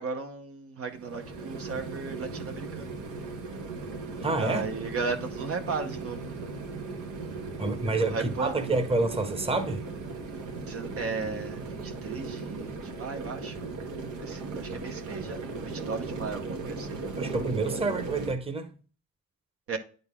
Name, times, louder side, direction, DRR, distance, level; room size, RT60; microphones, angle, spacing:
voice 1, 0.0-2.9 4.2-6.3 8.0-8.6 10.7-13.6 14.2-17.0 19.7-19.8, right 4 dB, 50° right, 0.9 m, -35 dB
sound 1, 0.9-18.3, right 3 dB, 80° right, 1.4 m, -37 dB
voice 2, 4.2-4.7 7.6-9.8 17.2-18.7, right 3 dB, 20° right, 1.0 m, -28 dB
9.5 x 4.0 x 3.6 m
cardioid pair, 90°, 30 cm